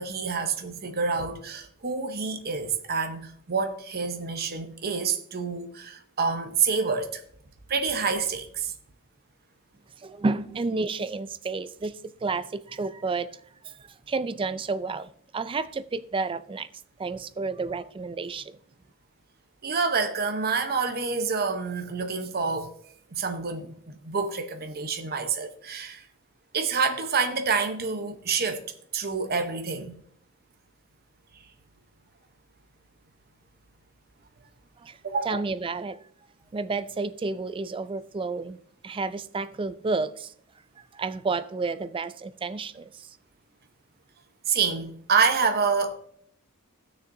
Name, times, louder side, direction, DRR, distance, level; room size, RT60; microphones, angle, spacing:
voice 1, 0.0-7.2 7.7-8.7 19.6-22.7 23.1-26.1 26.5-28.6 28.9-30.0 35.0-35.4 44.5-46.0, right 5 dB, 45° right, 0.9 m, -27 dB
voice 2, 10.0-13.4 13.6-16.7 17.0-18.6 34.8-35.0 35.2-36.1 36.5-38.6 38.8-40.3 40.8-43.2, right 3 dB, 25° right, 0.3 m, -31 dB
16.0 x 6.5 x 2.7 m
head